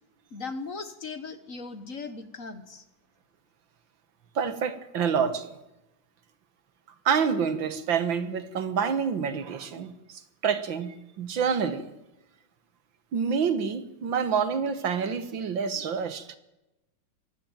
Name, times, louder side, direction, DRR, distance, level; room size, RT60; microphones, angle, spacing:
voice 1, 0.3-2.8, left 4 dB, 45° left, 1.6 m, -38 dB
voice 2, 4.4-5.5 7.1-11.9 13.1-16.4, right 6 dB, 70° right, 2.1 m, -27 dB
23.5 x 15.5 x 9.1 m
omnidirectional pair, 2.2 m